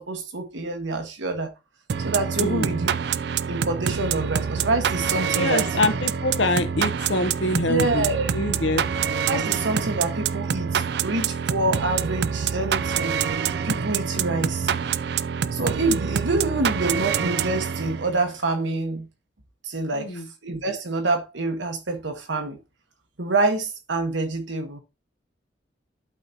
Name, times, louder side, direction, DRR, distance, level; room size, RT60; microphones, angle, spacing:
voice 1, 0.0-1.5 2.0-2.9 3.5-5.7 7.7-8.3 9.2-13.2 13.6-14.7 15.5-19.1 19.6-22.6 23.2-24.8, right 2 dB, 90° right, 1.4 m, -26 dB
sound 1, 1.9-18.2, right 7 dB, 60° right, 0.4 m, -26 dB
voice 2, 2.4-2.8 5.3-8.8 14.1-14.5 20.0-20.3, left 2 dB, 85° left, 1.1 m, -25 dB
11.5 x 4.1 x 2.9 m
head